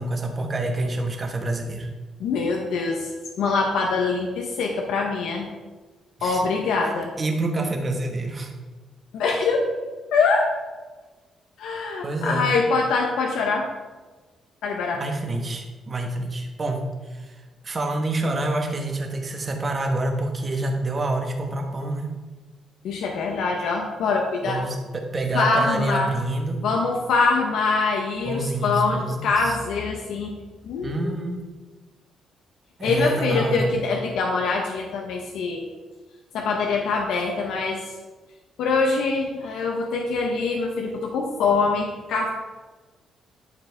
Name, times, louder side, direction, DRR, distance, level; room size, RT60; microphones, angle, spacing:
voice 1, 0.0-1.9 6.2-6.4 6.8-8.5 12.0-12.5 14.9-22.2 24.4-26.6 28.2-29.6 30.8-31.4 32.8-33.7, right 2 dB, 25° right, 2 dB, 1.1 m, -27 dB
voice 2, 2.2-3.1 3.4-5.5 6.2-7.1 9.1-9.7 10.1-10.5 11.6-13.7 14.6-15.0 22.8-24.6 25.3-26.1 26.6-30.3 30.6-31.2 32.8-35.6 36.3-37.8 38.6-42.3, left 4 dB, 85° left, 1 dB, 1.0 m, -24 dB
11.0 x 7.0 x 3.5 m, 1.3 s
cardioid pair, 165°, 0 cm